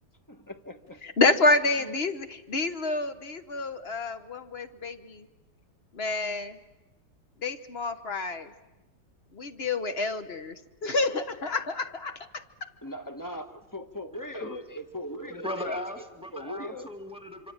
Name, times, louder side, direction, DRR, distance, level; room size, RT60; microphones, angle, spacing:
voice 1, 0.3-1.0 1.8-2.0 12.8-15.8 16.3-16.9, left 1 dB, 10° left, 8 dB, 1.1 m, -39 dB
voice 2, 1.0-5.3 5.9-6.6 7.4-8.5 9.3-10.5 10.8-12.4, left 3 dB, 40° left, 10 dB, 1.2 m, -28 dB
voice 3, 15.3-17.5, left 1 dB, 5° right, 5 dB, 2.1 m, -37 dB
26.0 x 25.5 x 8.8 m, 1.0 s
omnidirectional pair, 2.0 m